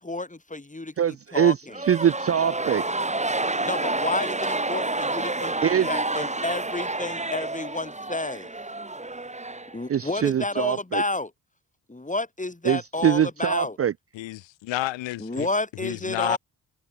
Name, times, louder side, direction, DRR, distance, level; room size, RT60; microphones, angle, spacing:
voice 1, 0.0-0.9 1.3-1.8 3.6-8.5 9.7-11.3 11.9-13.8 15.2-16.4, left 2 dB, 15° left, 5.4 m, -30 dB
voice 2, 1.0-1.6 1.9-2.8 5.6-5.9 9.9-11.0 12.6-13.9, right 9 dB, 30° right, 0.6 m, -23 dB
sound 1, 1.7-10.1, right 2 dB, 15° right, 2.6 m, -29 dB
voice 3, 14.1-15.5 15.8-16.4, left 16 dB, 75° left, 4.0 m, -30 dB
hypercardioid pair, 45°, 45 cm